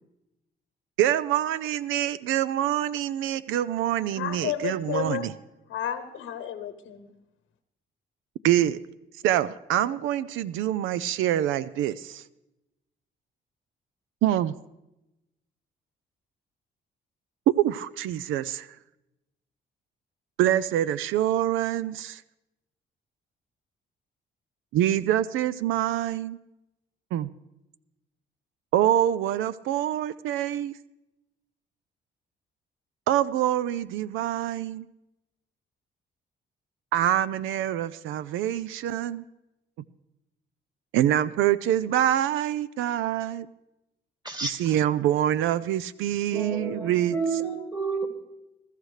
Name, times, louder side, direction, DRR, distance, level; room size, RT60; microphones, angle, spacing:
voice 1, 1.0-5.3 8.4-8.8 9.2-12.2 14.2-14.5 17.6-18.7 20.4-22.2 24.7-26.4 27.1-27.3 28.7-30.8 33.1-34.9 36.9-39.2 40.9-43.5 44.4-47.4, right 12 dB, 90° right, 0.5 m, -25 dB
voice 2, 4.1-5.3 5.7-7.1, left 10 dB, 85° left, 1.0 m, -32 dB
voice 3, 46.3-48.1, right 4 dB, 20° right, 2.5 m, -30 dB
22.0 x 13.0 x 3.2 m
cardioid pair, 90°, 20 cm